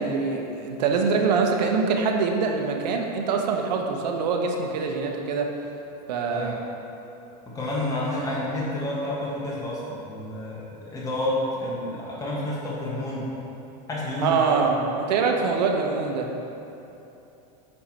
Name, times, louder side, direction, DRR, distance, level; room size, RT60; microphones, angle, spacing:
voice 1, 0.0-5.5 6.1-6.6 14.2-16.3, right 5 dB, 80° right, 2 dB, 0.8 m, -24 dB
voice 2, 7.5-13.3 13.9-14.7, left 1 dB, 15° left, -6 dB, 1.3 m, -29 dB
6.3 x 4.4 x 4.4 m, 2.9 s
supercardioid pair, 120°, 21 cm